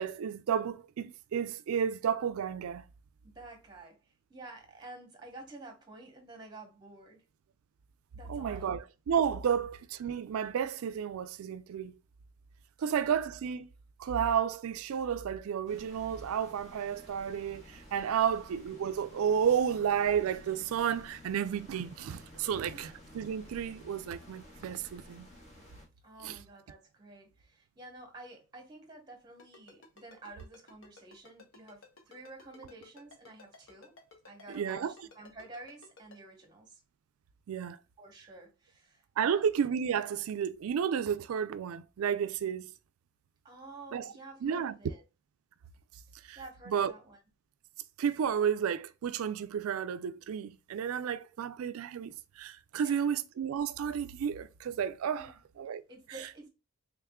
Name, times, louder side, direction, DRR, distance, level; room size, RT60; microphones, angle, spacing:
voice 1, 0.0-2.8 8.3-11.9 12.8-13.7 14.0-25.3 26.2-26.4 34.5-34.9 37.5-37.8 39.2-42.7 43.9-44.1 44.4-44.7 46.3-46.4 46.7-46.9 48.0-55.3 55.6-55.8, right 8 dB, 85° right, 0.3 m, -32 dB
voice 2, 3.2-7.2 8.1-8.7 22.7-23.0 26.0-33.9 34.2-36.8 38.0-39.5 43.4-45.0 46.3-47.2 52.8-53.1 55.2-55.4 55.9-56.5, right 2 dB, 20° right, 1.0 m, -50 dB
sound 1, 15.7-25.9, left 1 dB, 30° left, 1.2 m, -53 dB
Ringtone, 29.4-36.2, left 3 dB, 60° left, 1.0 m, -54 dB
3.5 x 3.5 x 2.2 m
head